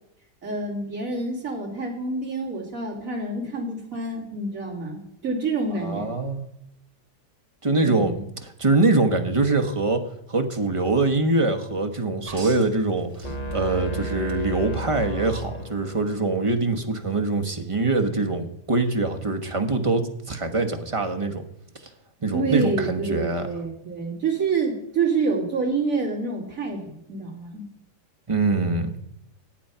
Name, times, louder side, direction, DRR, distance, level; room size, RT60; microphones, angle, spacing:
voice 1, 0.4-6.2 7.8-8.2 22.3-27.6, right 4 dB, 50° right, -1 dB, 3.1 m, -27 dB
voice 2, 5.8-6.4 7.6-8.1 8.4-10.0 10.3-21.4 22.2-23.5 28.3-29.0, right 3 dB, 25° right, 5 dB, 0.9 m, -23 dB
sound 1, 12.3-13.9 14.3-14.9 16.5-16.6, right 3 dB, 90° right, 2.2 m, -41 dB
sound 2, 13.2-16.2, right 1 dB, 40° left, 0.6 m, -32 dB
11.5 x 8.6 x 5.6 m, 0.80 s
omnidirectional pair, 1.8 m